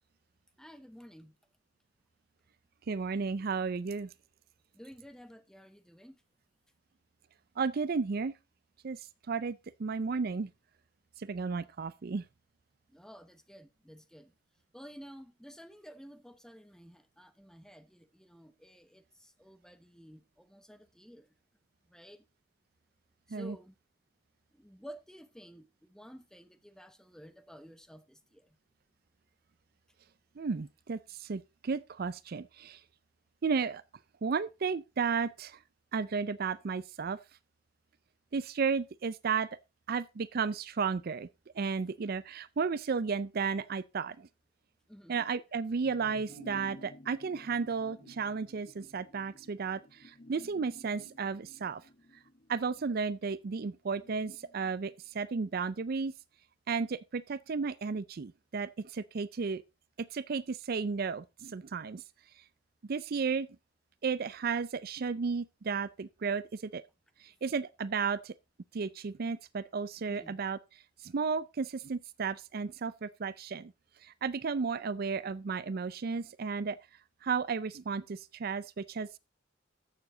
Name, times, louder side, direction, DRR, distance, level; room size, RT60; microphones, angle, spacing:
voice 1, 0.6-1.4 4.7-6.2 12.9-14.3 14.7-21.3 21.9-22.2 23.3-23.7 24.5-28.5 44.9-45.3 70.1-70.4, equal, 5° left, 0.9 m, -52 dB
voice 2, 2.9-4.1 7.6-8.3 8.8-10.5 11.2-12.2 23.3-23.6 30.4-32.8 33.4-33.8 34.2-35.6 35.9-37.2 38.3-39.6 39.9-41.3 41.6-44.3 45.1-51.8 52.5-56.1 56.7-59.6 60.0-62.0 62.9-63.5 64.0-66.8 67.2-68.3 68.7-70.6 71.0-73.7 74.0-76.8 77.2-79.2, right 5 dB, 50° right, 0.4 m, -33 dB
sound 1, 45.8-55.7 56.0-56.1, left 1 dB, 40° left, 0.8 m, -55 dB
14.0 x 7.0 x 3.8 m
head